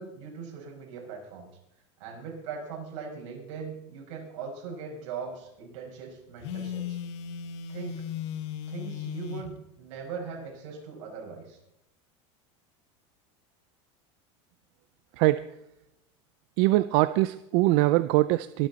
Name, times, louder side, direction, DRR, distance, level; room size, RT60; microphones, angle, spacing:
voice 1, 0.0-1.5 2.0-7.0 7.7-8.0 8.7-11.6, right 6 dB, 70° right, 0 dB, 5.5 m, -40 dB
Telephone, 6.4-9.5, left 8 dB, 65° left, 1.4 m, -36 dB
voice 2, 16.6-18.7, right 18 dB, 50° right, 14 dB, 0.5 m, -22 dB
23.0 x 8.6 x 4.1 m, 0.84 s
supercardioid pair, 160°, 16 cm